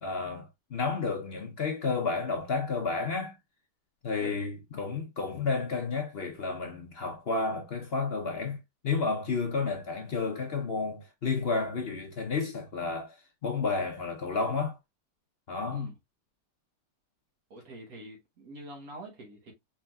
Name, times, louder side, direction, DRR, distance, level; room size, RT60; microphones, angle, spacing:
voice 1, 0.0-3.4 4.0-13.1 13.4-14.8 15.5-15.9, left 4 dB, 50° left, 0.8 m, -31 dB
voice 2, 17.5-19.5, right 1 dB, 60° right, 1.5 m, -45 dB
4.9 x 3.8 x 2.2 m
omnidirectional pair, 1.8 m